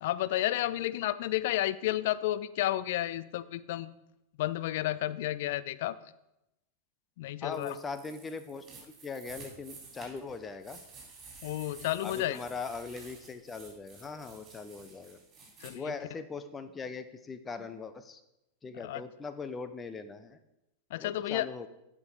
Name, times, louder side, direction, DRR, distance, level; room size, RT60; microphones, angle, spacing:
voice 1, 0.0-3.9 4.4-6.0 7.2-7.8 11.4-12.4 15.6-15.9 18.7-19.0 20.9-21.5, left 14 dB, 55° left, 17 dB, 0.4 m, -31 dB
voice 2, 7.4-10.8 12.0-15.2 15.7-18.2 18.6-20.4 21.0-21.7, left 4 dB, 20° left, 10 dB, 0.7 m, -40 dB
sound 1, 7.5-15.7, right 4 dB, 25° right, 3.9 m, -51 dB
14.5 x 6.1 x 3.9 m, 0.89 s
figure-of-eight pair, 90°, 0 cm